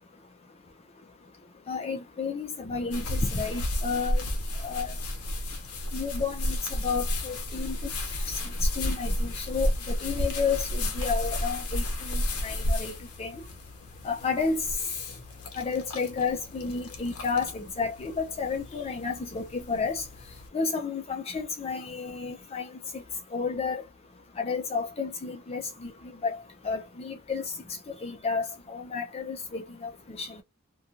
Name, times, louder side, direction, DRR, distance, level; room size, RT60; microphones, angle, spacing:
voice 1, 1.7-4.2 4.6-4.9 5.9-7.9 8.3-13.4 14.0-14.6 15.6-20.0 20.5-22.7 22.9-23.0 23.3-23.8 24.4-25.9 26.2-26.4 26.6-27.4 28.0-29.9 30.2-30.4, left 5 dB, 25° left, 0.4 m, -31 dB
sound 1, 2.9-20.5, left 1 dB, 90° left, 0.7 m, -32 dB
2.4 x 2.3 x 2.7 m
head